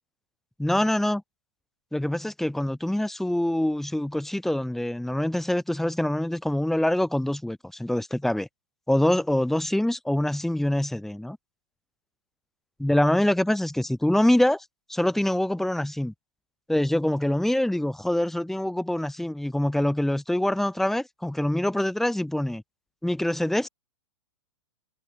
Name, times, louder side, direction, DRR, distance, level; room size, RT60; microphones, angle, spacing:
voice 1, 0.6-1.2 1.9-8.5 8.9-11.4 12.8-16.1 16.7-22.6 23.0-23.7, left 1 dB, ahead, 2.6 m, -25 dB
hypercardioid pair, 135°, 16 cm